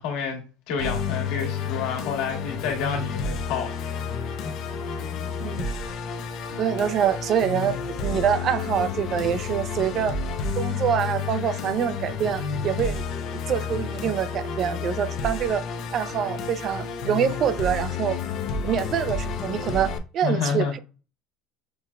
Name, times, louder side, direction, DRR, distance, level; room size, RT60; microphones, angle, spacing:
voice 1, 0.0-4.0 20.2-20.8, left 6 dB, 75° left, 1.4 m, -29 dB
Musical instrument, 0.8-20.0, left 5 dB, 50° left, 0.5 m, -30 dB
voice 2, 6.6-10.2 10.6-13.0 13.3-15.6 15.9-18.2 18.6-20.8, right 8 dB, 40° right, 0.3 m, -25 dB
6.0 x 2.1 x 2.3 m
cardioid pair, 135°, 0 cm